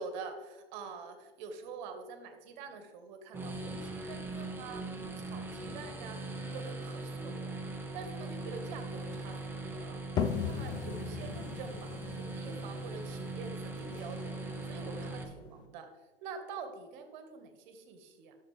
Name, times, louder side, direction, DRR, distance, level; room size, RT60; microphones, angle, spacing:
voice 1, 0.0-4.8 5.2-6.2 6.5-7.6 7.9-10.0 10.4-14.3 14.6-15.9 16.2-18.3, right 4 dB, 50° right, 7 dB, 1.5 m, -46 dB
sound 1, 3.3-15.2, right 2 dB, 5° right, 0.9 m, -40 dB
sound 2, 10.2-15.6, left 7 dB, 15° left, 0.4 m, -39 dB
11.5 x 6.8 x 3.3 m, 1.3 s
hypercardioid pair, 120°, 30 cm